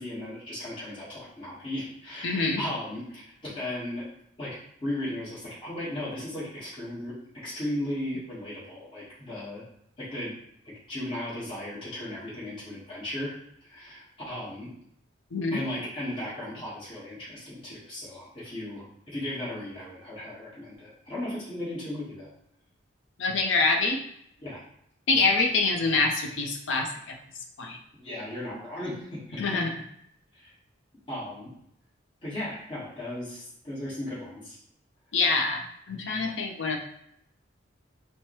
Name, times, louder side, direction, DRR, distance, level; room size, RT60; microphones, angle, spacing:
voice 1, 0.0-4.1 4.4-9.6 10.0-10.4 10.6-14.7 15.5-22.3 24.4-24.6 28.0-29.6 30.3-30.5 31.1-31.5 32.2-34.6, left 1 dB, 25° left, -10 dB, 1.3 m, -36 dB
voice 2, 2.2-2.6 15.3-15.6 23.2-24.0 25.1-27.2 27.6-27.8 29.4-29.8 35.1-36.8, left 3 dB, 75° left, 2 dB, 0.6 m, -25 dB
4.7 x 2.1 x 3.0 m, 0.73 s
head